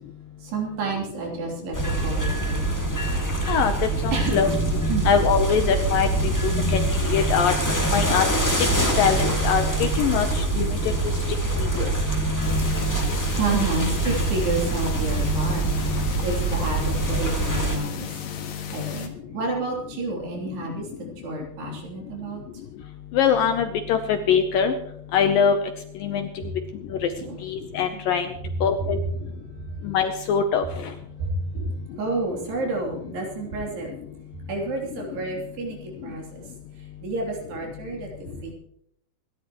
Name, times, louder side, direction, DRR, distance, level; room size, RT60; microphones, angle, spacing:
voice 1, 0.4-1.8 2.0-2.8 4.1-4.5 4.9-5.1 13.3-15.8 16.2-18.1 18.7-20.9 21.2-22.4 27.2-27.4 27.9-28.0 31.2-31.7 32.0-33.9 34.5-35.8 36.0-36.2 37.0-38.5, right 3 dB, 75° right, -1 dB, 5.4 m, -29 dB
sound 1, 1.7-17.8, right 2 dB, 15° left, 0.6 m, -24 dB
voice 2, 4.0-4.5 5.1-6.1 6.4-6.8 7.1-7.5 7.9-8.2 9.0-10.8 11.6-11.9 23.1-24.7 25.1-25.6 26.0-26.3 27.4-28.3 28.6-29.0 29.8-30.6, left 7 dB, 75° left, 7 dB, 2.2 m, -22 dB
sound 2, 12.4-19.1, left 7 dB, 60° left, 2.2 m, -35 dB
26.5 x 11.5 x 3.1 m, 0.72 s
omnidirectional pair, 4.8 m